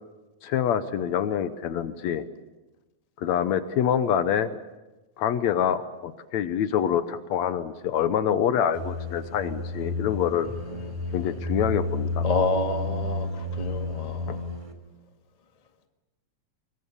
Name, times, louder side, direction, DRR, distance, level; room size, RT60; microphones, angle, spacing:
voice 1, 0.4-2.3 3.2-4.5 5.2-10.5 11.1-12.3 14.3-14.4, left 9 dB, 75° left, 12 dB, 2.1 m, -26 dB
sound 1, 8.7-14.7, left 1 dB, 10° right, 2.8 m, -31 dB
voice 2, 12.2-13.3 13.5-14.4, left 3 dB, 15° left, 5 dB, 1.3 m, -28 dB
25.0 x 22.0 x 7.2 m, 1.1 s
omnidirectional pair, 3.4 m